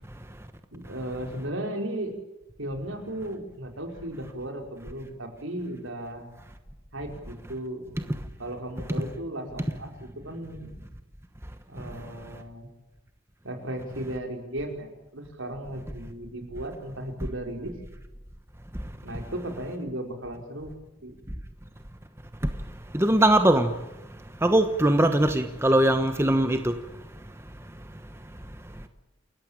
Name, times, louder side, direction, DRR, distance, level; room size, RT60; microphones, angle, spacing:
voice 1, 0.7-2.1 2.6-6.3 6.9-7.8 8.4-10.8 11.7-12.7 13.4-17.7 19.0-20.7 21.0-21.2, right 1 dB, 70° right, 5.2 m, -35 dB
voice 2, 22.9-23.7 24.4-26.8, right 1 dB, 10° right, 1.1 m, -21 dB
29.0 x 14.5 x 8.9 m
head